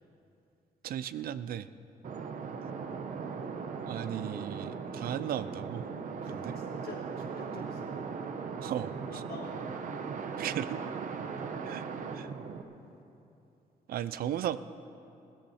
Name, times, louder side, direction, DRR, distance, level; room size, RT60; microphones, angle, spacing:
voice 1, 0.8-1.7 3.8-5.8 6.3-6.5 8.6-9.2 10.4-10.8 11.7-11.9 12.1-12.3 13.9-14.6, right 10 dB, 70° right, 14 dB, 0.5 m, -36 dB
sound 1, 2.0-12.6, right 5 dB, 55° right, 0.9 m, -38 dB
voice 2, 6.2-7.9 9.1-9.5 11.1-11.3, left 4 dB, 75° left, -1 dB, 2.6 m, -48 dB
17.5 x 14.0 x 4.3 m, 2.7 s
cardioid pair, 140°, 16 cm